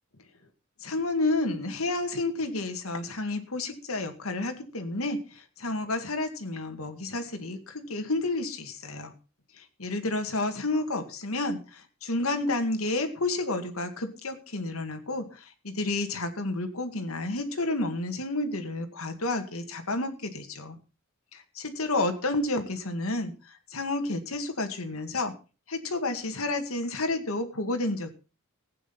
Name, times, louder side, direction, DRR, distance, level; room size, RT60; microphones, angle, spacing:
voice 1, 0.8-9.1 9.6-20.8 21.3-23.3 23.7-25.3 25.7-28.1, left 2 dB, 75° left, 6 dB, 2.1 m, -30 dB
16.0 x 9.2 x 5.8 m, 0.34 s
head